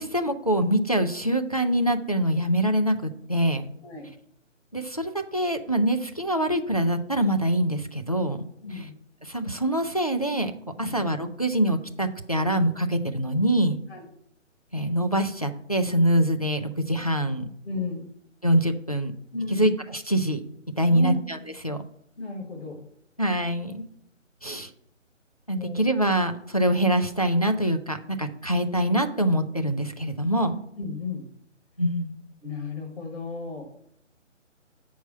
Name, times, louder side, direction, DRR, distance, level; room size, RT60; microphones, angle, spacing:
voice 1, 0.0-3.7 4.7-8.4 9.2-10.5 10.8-13.8 14.7-17.5 18.4-19.1 19.5-20.4 20.8-21.4 21.6-21.8 23.2-23.8 24.4-24.7 25.5-30.6 31.8-32.1, right 1 dB, 30° left, 7 dB, 0.4 m, -24 dB
voice 2, 8.6-8.9 10.8-11.0 13.9-14.1 17.6-18.1 19.3-19.7 20.9-21.2 22.2-22.8 25.5-25.9 30.8-31.3 32.4-33.7, left 3 dB, 50° left, 0 dB, 1.6 m, -34 dB
7.9 x 4.7 x 5.4 m, 0.73 s
figure-of-eight pair, 150°, 38 cm